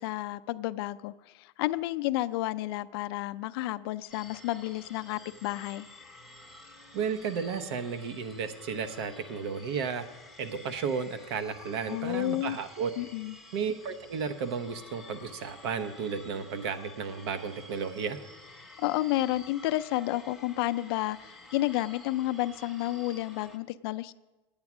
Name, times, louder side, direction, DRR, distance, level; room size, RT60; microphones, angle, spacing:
voice 1, 0.0-5.9 11.9-12.6 13.0-13.4 18.8-24.1, left 16 dB, 65° left, 12 dB, 0.4 m, -31 dB
sound 1, 4.1-23.6, left 2 dB, ahead, 0.7 m, -51 dB
voice 2, 6.9-10.1 10.4-12.9 13.5-18.2, right 6 dB, 75° right, 9 dB, 0.9 m, -33 dB
9.7 x 8.7 x 6.0 m, 1.1 s
supercardioid pair, 155°, 14 cm